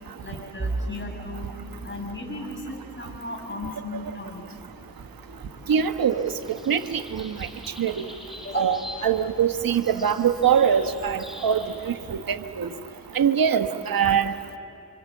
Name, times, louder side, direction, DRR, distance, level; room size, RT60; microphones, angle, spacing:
voice 1, 0.2-1.5 1.8-4.4 8.4-8.8, left 2 dB, 30° left, 2 dB, 5.8 m, -35 dB
Bowed string instrument, 0.6-5.7, right 2 dB, 35° right, 1.9 m, -38 dB
sound 1, 4.2-12.7, equal, ahead, 6.3 m, -44 dB
voice 2, 5.7-6.3 6.7-7.3 7.8-8.0 8.5-12.7 13.1-14.3, right 8 dB, 75° right, 9 dB, 1.2 m, -23 dB
28.0 x 26.0 x 7.2 m, 3.0 s
cardioid pair, 60°, 36 cm